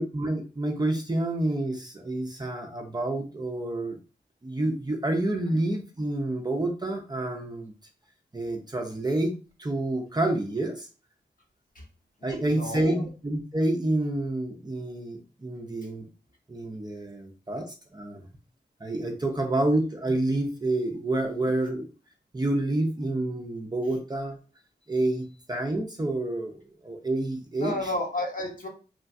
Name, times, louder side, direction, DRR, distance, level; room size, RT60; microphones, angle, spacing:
voice 1, 0.0-4.0 4.4-7.7 8.3-10.9 12.2-16.0 16.5-18.3 18.8-21.9 22.3-24.4 24.9-27.8, right 1 dB, 25° right, 2 dB, 0.5 m, -28 dB
voice 2, 12.2-13.0 27.6-28.7, left 1 dB, 50° left, 1 dB, 0.9 m, -32 dB
3.1 x 2.3 x 2.5 m, 0.34 s
wide cardioid pair, 70°, 18 cm